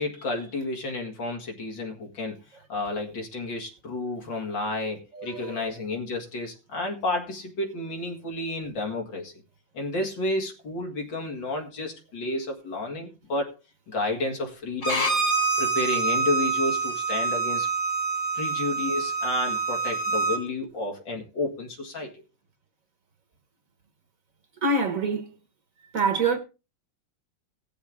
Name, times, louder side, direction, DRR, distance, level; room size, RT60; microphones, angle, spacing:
voice 1, 0.0-2.4 2.7-9.3 9.7-13.5 13.9-15.1 15.6-17.7 18.3-22.1, left 2 dB, 80° left, 2.8 m, -31 dB
voice 2, 5.1-5.6 24.6-25.3 25.9-26.4, right 3 dB, 50° right, 1.6 m, -25 dB
Bowed string instrument, 14.8-20.4, right 4 dB, 65° left, 2.4 m, -26 dB
17.5 x 7.1 x 3.5 m
omnidirectional pair, 2.0 m